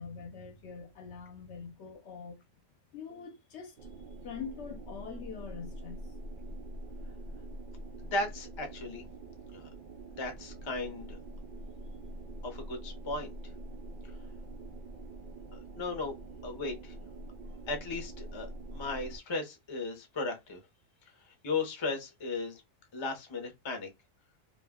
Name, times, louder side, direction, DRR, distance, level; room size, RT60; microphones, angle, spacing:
voice 1, 0.0-2.4 2.9-6.1, left 6 dB, 65° left, 0.8 m, -44 dB
sound 1, 3.8-19.2, right 1 dB, 90° right, 0.4 m, -45 dB
voice 2, 8.1-9.0 9.5-9.7 10.2-11.2 12.4-13.3 15.5-16.1 16.4-16.9 17.7-18.5 18.7-20.6 21.4-22.6 22.9-23.9, left 3 dB, 35° left, 0.4 m, -36 dB
2.3 x 2.1 x 3.4 m
omnidirectional pair, 1.4 m